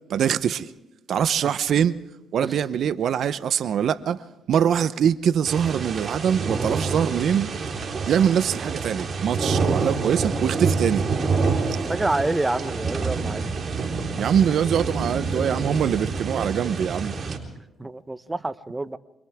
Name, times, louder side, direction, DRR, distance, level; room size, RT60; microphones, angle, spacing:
voice 1, 0.1-0.7 1.1-2.0 2.3-4.2 4.5-7.5 8.1-11.1 14.2-17.1, right 8 dB, 65° right, 0.9 m, -23 dB
sound 1, 5.4-17.4, right 4 dB, 45° right, 3.9 m, -27 dB
voice 2, 11.9-13.4 17.8-19.0, right 2 dB, 15° right, 0.9 m, -27 dB
27.5 x 27.0 x 3.6 m
cardioid pair, 90°, 0 cm